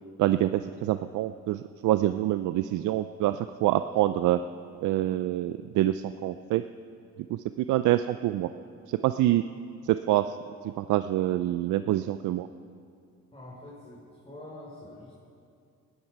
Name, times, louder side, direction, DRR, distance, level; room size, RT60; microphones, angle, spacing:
voice 1, 0.2-4.4 4.8-6.6 7.3-8.5 8.9-9.4 9.8-10.4 10.8-12.5, right 14 dB, 80° right, 11 dB, 0.5 m, -26 dB
voice 2, 13.3-15.1, left 1 dB, 20° left, -6 dB, 4.5 m, -45 dB
19.0 x 13.5 x 4.7 m, 2.4 s
cardioid pair, 90°, 30 cm